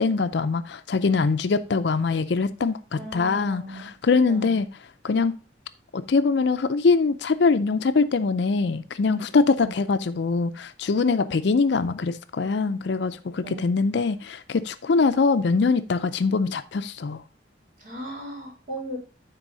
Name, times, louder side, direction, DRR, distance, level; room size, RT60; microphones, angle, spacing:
voice 1, 0.0-4.7 5.0-5.4 5.9-17.2, left 4 dB, 65° left, 0.4 m, -23 dB
voice 2, 3.0-3.9 4.3-4.5 9.6-9.8 13.4-13.7 17.8-19.0, right 1 dB, 45° right, 3.0 m, -37 dB
9.7 x 4.1 x 3.9 m
head